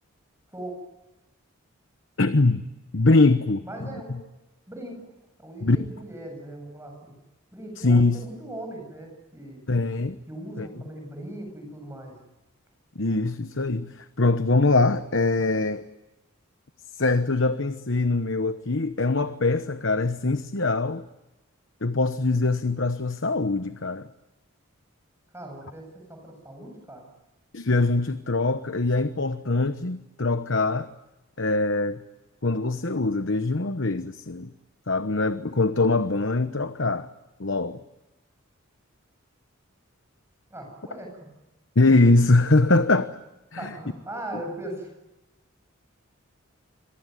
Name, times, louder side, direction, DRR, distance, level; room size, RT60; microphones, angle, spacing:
voice 1, 2.2-2.6 2.9-4.2 5.6-5.8 7.8-8.2 9.7-10.2 10.6-10.8 12.9-15.8 17.0-21.0 21.8-24.1 27.5-30.9 31.4-32.0 32.4-34.5 34.9-37.1 37.4-37.8 41.8-43.1 43.5-43.7, left 3 dB, 55° left, 10 dB, 1.1 m, -23 dB
voice 2, 3.6-4.2 4.7-5.0 5.4-7.1 7.5-9.6 10.3-12.1 25.3-27.0 40.5-41.3 43.6-44.9, right 1 dB, 10° right, 3 dB, 8.0 m, -39 dB
27.5 x 23.0 x 9.4 m, 1.0 s
head